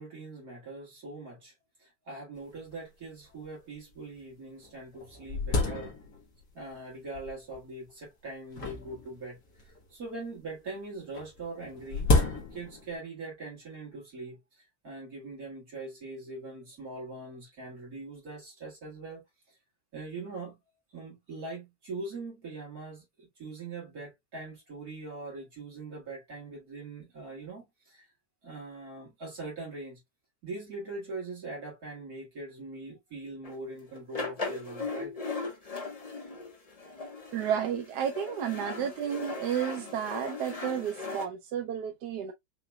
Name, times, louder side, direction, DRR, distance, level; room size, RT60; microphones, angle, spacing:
voice 1, 0.0-1.5 1.8-6.0 6.5-9.4 9.6-19.2 19.9-20.6 20.9-28.0 28.4-30.0 30.4-35.1, right 2 dB, 60° right, 2.5 m, -42 dB
sound 1, 2.4-2.5 2.7-2.8 3.4-3.5 4.2-4.3 4.6-6.4 7.2-7.6 8.5-9.9 11.1-12.9, left 3 dB, 80° left, 2.0 m, -30 dB
sound 2, 33.4-33.5 33.9-41.2, left 3 dB, 30° left, 0.8 m, -38 dB
voice 2, 37.3-42.3, right 9 dB, 80° right, 1.2 m, -32 dB
5.7 x 3.0 x 2.2 m
omnidirectional pair, 1.8 m